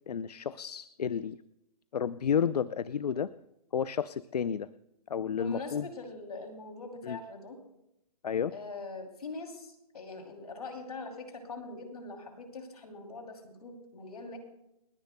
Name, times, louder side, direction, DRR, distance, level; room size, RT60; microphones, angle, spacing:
voice 1, 0.1-1.4 1.9-3.3 3.7-4.7 5.1-5.9 7.0-7.2 8.2-8.5, left 7 dB, 90° left, 16 dB, 0.5 m, -31 dB
voice 2, 5.3-7.6 8.5-14.4, left 3 dB, 70° left, 4 dB, 2.9 m, -43 dB
30.0 x 10.5 x 2.2 m, 0.84 s
hypercardioid pair, 175°, 20 cm